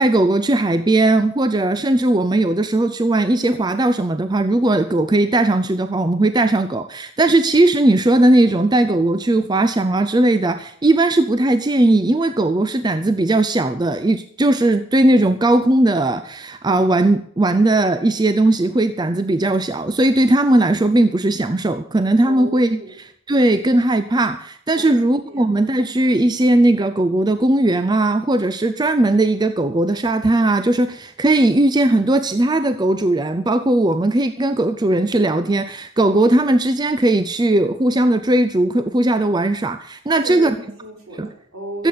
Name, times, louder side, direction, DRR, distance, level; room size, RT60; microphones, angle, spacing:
voice 1, 0.0-22.8 23.3-40.5 41.2-41.3 41.8-41.9, right 2 dB, 20° right, 10 dB, 0.4 m, -18 dB
voice 2, 22.2-23.0 24.7-25.4 40.1-41.9, right 1 dB, 70° right, 1 dB, 4.3 m, -34 dB
14.5 x 7.8 x 8.4 m, 0.64 s
head